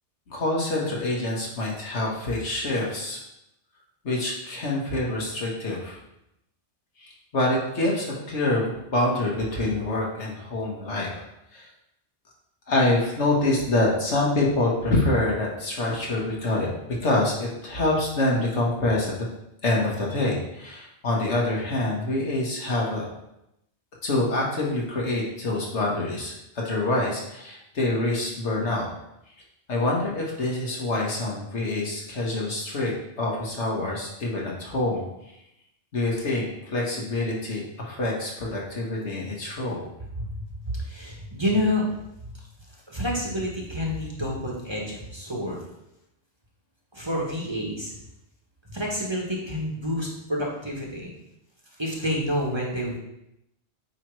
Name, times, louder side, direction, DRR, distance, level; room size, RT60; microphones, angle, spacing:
voice 1, 0.3-3.2 4.0-6.0 7.0-11.2 11.5-11.6 12.7-16.7 17.0-19.1 19.6-23.0 24.0-28.9 29.7-35.0 35.9-39.8, left 2 dB, 80° left, -3 dB, 1.8 m, -26 dB
voice 2, 40.8-41.8 42.2-42.3 42.9-45.6 46.9-47.9 48.7-51.1 51.8-53.0, left 1 dB, 25° right, -3 dB, 1.3 m, -28 dB
8.6 x 3.2 x 4.7 m, 0.85 s
omnidirectional pair, 1.2 m